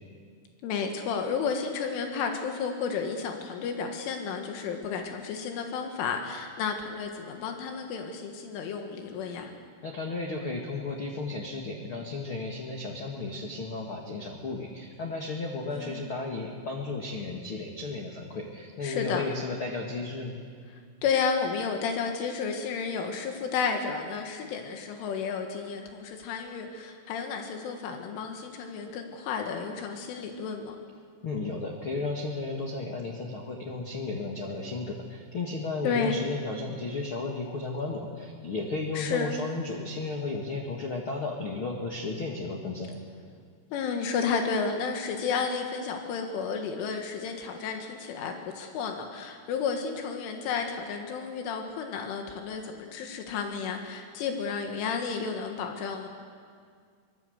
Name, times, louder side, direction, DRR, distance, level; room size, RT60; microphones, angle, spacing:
voice 1, 0.6-9.5 15.7-16.2 18.8-19.3 21.0-30.8 35.8-36.2 39.0-39.4 43.7-56.1, left 5 dB, 85° left, 4 dB, 4.0 m, -32 dB
voice 2, 9.8-20.4 31.2-43.0, left 3 dB, 60° left, 0 dB, 1.3 m, -34 dB
25.0 x 21.0 x 7.9 m, 2.1 s
omnidirectional pair, 5.5 m